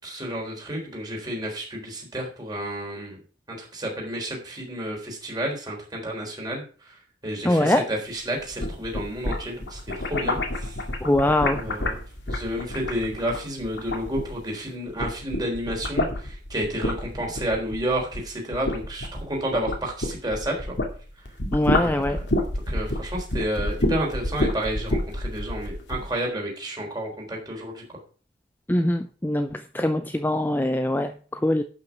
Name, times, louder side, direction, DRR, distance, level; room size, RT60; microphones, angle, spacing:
voice 1, 0.0-3.2 3.5-7.0 7.2-10.8 11.5-12.0 12.3-20.7 21.8-22.1 22.7-28.0, right 1 dB, 20° right, 3.8 m, -31 dB
voice 2, 7.4-7.9 11.0-11.6 21.5-22.2 28.7-31.6, left 1 dB, 10° left, 0.4 m, -23 dB
sound 1, 8.4-14.6 14.9-21.0 21.3-26.1, left 1 dB, 70° left, 2.2 m, -28 dB
11.5 x 6.0 x 5.9 m
head